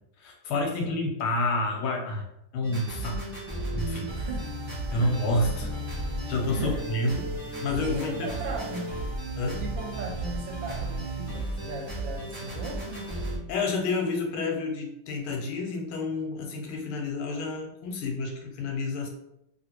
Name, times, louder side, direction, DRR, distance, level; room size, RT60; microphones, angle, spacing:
voice 1, 0.2-2.2 2.5-3.2 3.7-4.1 4.9-5.7 6.3-7.2 7.6-8.3 9.4-9.6 13.5-19.1, left 2 dB, 85° left, 1 dB, 1.6 m, -29 dB
sound 1, 2.6-13.4, right 1 dB, 40° right, 0.3 m, -34 dB
voice 2, 4.2-4.5 4.9-5.7 6.5-6.8 7.8-9.0 9.6-13.2, right 3 dB, 75° right, 1 dB, 1.2 m, -38 dB
3.2 x 2.8 x 2.9 m, 0.82 s
omnidirectional pair, 2.3 m